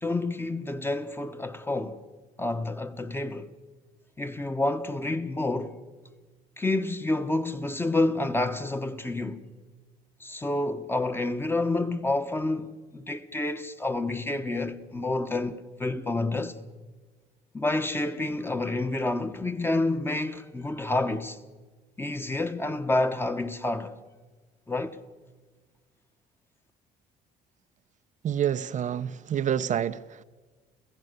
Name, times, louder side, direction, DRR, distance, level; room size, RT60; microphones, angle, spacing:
voice 1, 0.0-2.0 2.4-3.5 4.2-5.8 6.6-9.4 10.2-16.6 17.5-21.4 22.0-24.0 24.7-25.0, left 2 dB, 15° left, 1.3 m, -29 dB
voice 2, 28.2-30.2, right 9 dB, 45° right, 0.6 m, -28 dB
30.0 x 16.0 x 6.8 m
cardioid pair, 110°, 17 cm